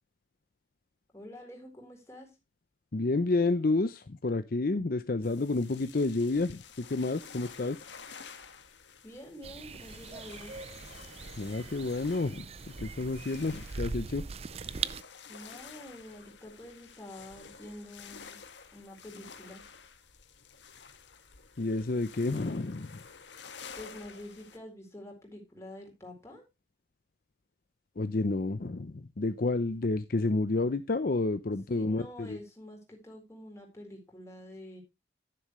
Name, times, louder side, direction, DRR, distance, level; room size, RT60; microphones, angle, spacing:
voice 1, 1.1-2.3 9.0-10.6 15.3-18.4 18.7-19.6 23.8-26.4 31.7-34.8, left 1 dB, 15° left, 4.2 m, -47 dB
voice 2, 2.9-7.9 11.4-14.2 21.6-23.0 28.0-32.4, left 3 dB, 50° left, 0.6 m, -30 dB
sound 1, 5.2-24.6, left 6 dB, 75° left, 1.6 m, -51 dB
sound 2, 9.4-15.0, right 5 dB, 35° right, 0.4 m, -41 dB
11.0 x 10.0 x 3.1 m
head